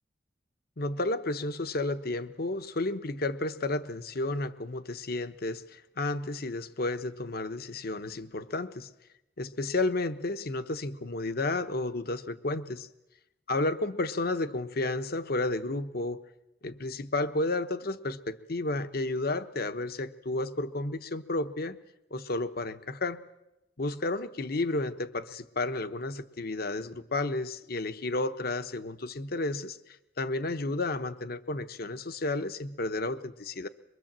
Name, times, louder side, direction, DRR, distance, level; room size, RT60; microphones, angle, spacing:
voice 1, 0.8-8.9 9.4-12.9 13.5-16.2 16.6-21.8 22.1-23.2 23.8-29.8 30.2-33.7, left 2 dB, 60° left, 11 dB, 1.1 m, -32 dB
23.5 x 23.0 x 7.5 m, 0.94 s
head